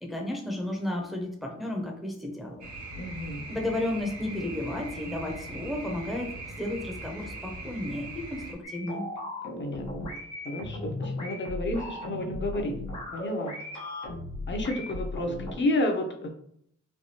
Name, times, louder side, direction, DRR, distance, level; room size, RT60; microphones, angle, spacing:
voice 1, 0.0-2.7 3.5-9.1, left 1 dB, ahead, 0 dB, 0.6 m, -33 dB
sound 1, 2.6-8.5, right 2 dB, 75° right, 0.8 m, -41 dB
voice 2, 2.9-3.4 9.6-10.1 10.4-12.8 13.1-13.6 14.5-16.3, left 1 dB, 40° left, 3 dB, 0.7 m, -31 dB
sound 2, 8.6-15.5, left 2 dB, 80° left, 1.0 m, -36 dB
3.3 x 2.3 x 2.7 m, 0.69 s
cardioid pair, 80°, 29 cm